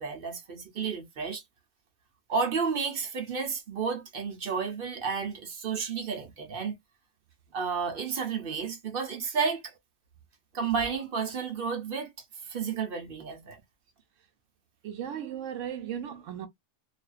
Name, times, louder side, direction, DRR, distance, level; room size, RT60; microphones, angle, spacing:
voice 1, 0.0-1.4 2.3-6.7 7.5-9.6 10.5-12.1 12.5-13.6, right 5 dB, 55° right, 0.9 m, -31 dB
voice 2, 14.8-16.5, right 9 dB, 80° right, 0.9 m, -36 dB
2.4 x 2.3 x 2.3 m
omnidirectional pair, 1.3 m